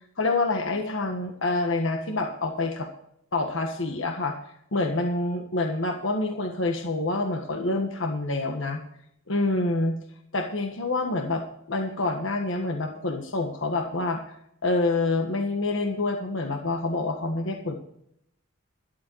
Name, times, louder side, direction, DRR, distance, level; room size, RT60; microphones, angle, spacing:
voice 1, 0.2-2.9 3.3-4.3 4.7-8.8 9.3-10.0 10.3-14.3 14.6-17.8, left 2 dB, 65° left, 4 dB, 1.6 m, -27 dB
12.0 x 12.0 x 4.8 m, 0.72 s
head